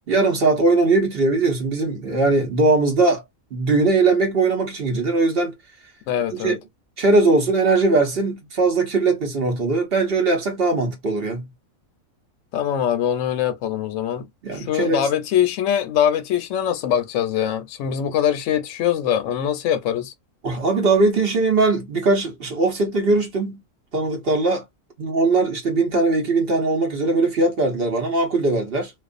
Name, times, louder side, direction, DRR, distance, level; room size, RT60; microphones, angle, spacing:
voice 1, 0.1-3.2 3.5-5.5 6.3-6.6 7.0-11.5 14.4-15.1 20.4-23.6 23.9-24.6 25.0-28.9, right 3 dB, 50° right, 0.9 m, -20 dB
voice 2, 6.1-6.6 12.5-20.1, left 9 dB, 70° left, 0.9 m, -23 dB
2.5 x 2.3 x 2.4 m
omnidirectional pair, 1.4 m